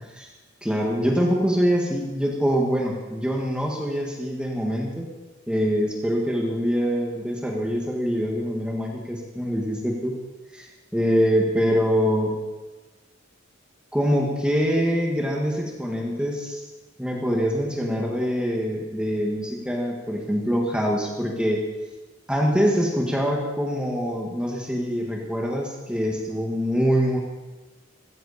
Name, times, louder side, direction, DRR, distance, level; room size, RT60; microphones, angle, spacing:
voice 1, 0.6-5.1 5.5-10.1 10.5-10.7 10.9-12.4 13.9-16.6 17.0-21.6 22.3-27.2, equal, 5° right, -1 dB, 1.7 m, -24 dB
15.5 x 15.0 x 4.2 m, 1.2 s
head